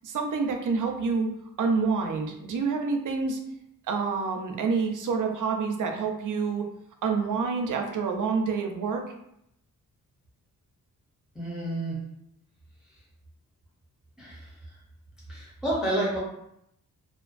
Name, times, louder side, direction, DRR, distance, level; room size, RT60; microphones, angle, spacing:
voice 1, 0.0-1.3 1.6-3.4 3.9-6.7 7.0-9.0, right 5 dB, 60° right, 3 dB, 0.5 m, -27 dB
voice 2, 11.3-12.0 14.2-14.5 15.3-16.2, right 1 dB, ahead, -7 dB, 0.8 m, -29 dB
2.4 x 2.2 x 2.4 m, 0.78 s
cardioid pair, 75°, 35 cm